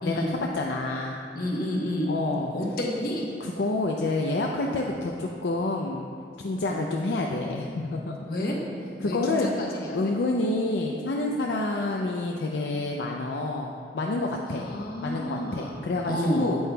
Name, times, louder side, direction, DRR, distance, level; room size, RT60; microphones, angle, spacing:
voice 1, 0.0-0.4 1.3-2.1 2.5-3.3 6.6-6.9 8.3-8.6 9.0-10.1 14.5-15.8 16.1-16.5, left 1 dB, 55° left, -1 dB, 1.0 m, -30 dB
voice 2, 0.5-1.2 2.1-2.5 3.4-6.0 6.4-8.3 9.0-9.5 9.9-14.7 15.0-16.6, left 2 dB, 75° left, 0 dB, 0.5 m, -28 dB
8.5 x 8.3 x 2.3 m, 2.6 s
head